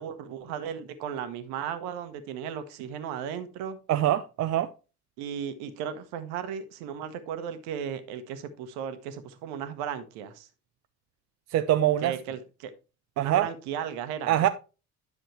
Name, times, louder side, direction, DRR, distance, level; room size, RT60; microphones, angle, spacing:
voice 1, 0.0-3.8 5.2-10.5 12.0-12.7 13.2-14.5, right 8 dB, 55° right, 1.3 m, -35 dB
voice 2, 3.9-4.7 11.5-12.1 13.2-13.5 14.3-14.5, right 12 dB, 35° right, 0.6 m, -23 dB
10.0 x 6.5 x 3.1 m
figure-of-eight pair, 55°, 46 cm